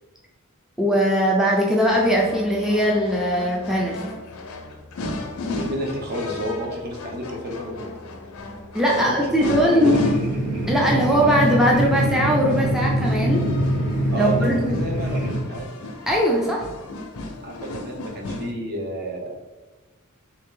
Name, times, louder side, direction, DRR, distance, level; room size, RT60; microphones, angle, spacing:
voice 1, 0.8-4.0 8.7-10.0 10.7-13.5 14.1-14.9 16.1-16.7, equal, ahead, -3 dB, 0.4 m, -20 dB
sound 1, 1.9-18.5, left 2 dB, 70° left, 0.5 m, -35 dB
voice 2, 5.4-7.9 8.9-10.0 14.1-15.7 17.4-19.4, equal, 45° right, 0 dB, 0.7 m, -30 dB
sound 2, 9.8-15.3, right 1 dB, 90° right, 1.3 m, -24 dB
3.2 x 2.8 x 3.7 m, 1.1 s
head